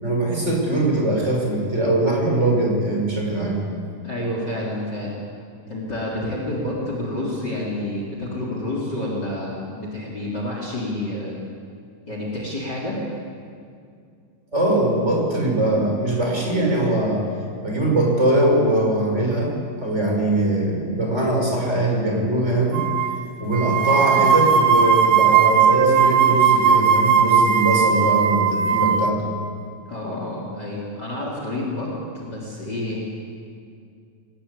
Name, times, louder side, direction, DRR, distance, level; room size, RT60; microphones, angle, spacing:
voice 1, 0.0-3.6 14.5-17.2 17.6-19.5 19.8-22.8 23.4-29.3, right 1 dB, 20° right, 0 dB, 6.2 m, -21 dB
voice 2, 4.0-5.2 5.7-11.4 12.1-13.0 29.9-33.1, left 1 dB, 30° left, -2 dB, 4.1 m, -29 dB
sound 1, 22.7-23.2 23.5-29.1, right 7 dB, 70° right, 1.2 m, -17 dB
27.0 x 19.5 x 8.5 m, 2.3 s
omnidirectional pair, 4.1 m